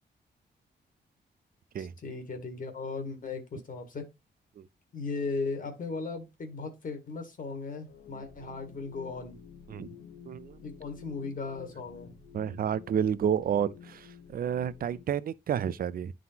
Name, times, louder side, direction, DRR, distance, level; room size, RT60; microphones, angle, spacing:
voice 1, 1.8-4.0 4.9-9.4 10.6-12.2, left 4 dB, 45° left, 1.6 m, -37 dB
sound 1, 7.9-15.1, left 7 dB, 85° left, 1.0 m, -51 dB
voice 2, 10.3-10.6 12.3-16.1, right 8 dB, 50° right, 0.4 m, -30 dB
11.0 x 3.8 x 2.8 m
wide cardioid pair, 145°, 19 cm